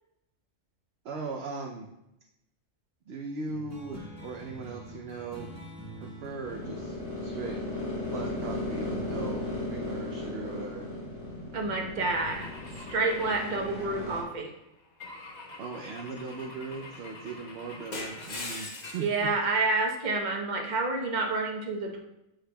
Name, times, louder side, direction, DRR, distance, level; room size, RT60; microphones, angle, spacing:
voice 1, 1.0-1.9 3.1-5.5 6.0-7.6 8.1-10.9 15.6-19.0, right 3 dB, 60° right, 2 dB, 0.8 m, -39 dB
sound 1, 3.5-8.4, right 1 dB, 15° right, 1.1 m, -46 dB
sound 2, 6.4-14.2, left 2 dB, 60° left, 2.2 m, -36 dB
voice 2, 11.5-12.5 12.9-14.5 19.0-22.0, right 3 dB, 40° right, 1 dB, 0.9 m, -28 dB
Car / Engine / Glass, 12.1-14.3 15.0-19.2, left 2 dB, 40° left, 0.9 m, -43 dB
7.9 x 6.4 x 2.2 m, 0.87 s
omnidirectional pair, 1.4 m